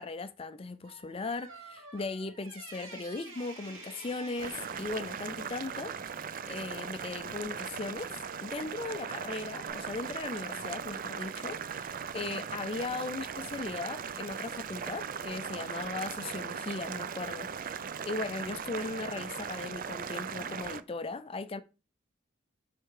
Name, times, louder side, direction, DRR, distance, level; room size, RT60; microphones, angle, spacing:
voice 1, 0.0-21.6, left 3 dB, 30° left, 0.4 m, -38 dB
sound 1, 0.8-6.0 8.8-9.1 9.6-9.7, right 3 dB, 90° right, 2.6 m, -50 dB
Boiling, 4.4-20.8, right 7 dB, 45° right, 0.5 m, -38 dB
6.6 x 4.4 x 4.8 m
head